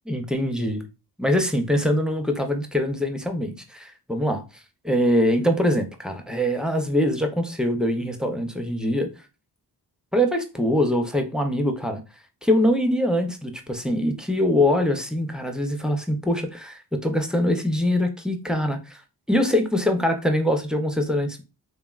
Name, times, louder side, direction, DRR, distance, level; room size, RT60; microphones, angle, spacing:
voice 1, 0.1-0.8 1.2-9.1 10.1-12.0 12.4-19.0 19.3-21.4, left 1 dB, ahead, 0.4 m, -23 dB
3.2 x 2.1 x 2.3 m
cardioid pair, 60°, 40 cm